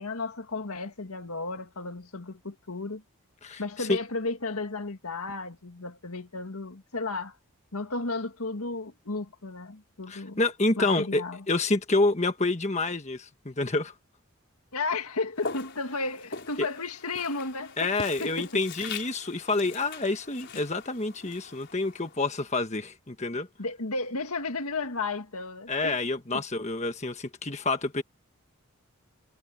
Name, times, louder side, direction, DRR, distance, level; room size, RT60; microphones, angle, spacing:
voice 1, 0.0-3.0 3.6-7.4 7.7-10.4 10.8-11.4 14.7-18.6 23.6-26.0, left 3 dB, 85° left, 1.9 m, -33 dB
voice 2, 3.4-4.0 10.1-13.9 16.6-16.7 17.8-23.5 25.7-28.0, left 2 dB, 30° left, 1.5 m, -28 dB
Walk footsteps, 15.4-22.5, left 4 dB, 55° left, 5.3 m, -42 dB
head